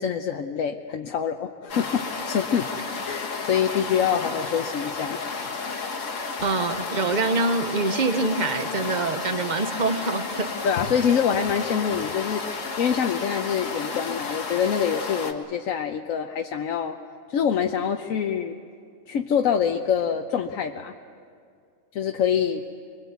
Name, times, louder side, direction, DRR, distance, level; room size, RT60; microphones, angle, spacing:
voice 1, 0.0-2.7 3.0-5.2 10.6-17.0 17.3-18.6 19.1-20.9 21.9-22.6, left 7 dB, 90° left, 4 dB, 1.2 m, -25 dB
sound 1, 1.7-15.3, left 4 dB, 70° left, 1.9 m, -32 dB
voice 2, 6.4-10.5, right 3 dB, 35° right, 9 dB, 1.1 m, -25 dB
25.0 x 21.5 x 8.2 m, 2.3 s
omnidirectional pair, 1.4 m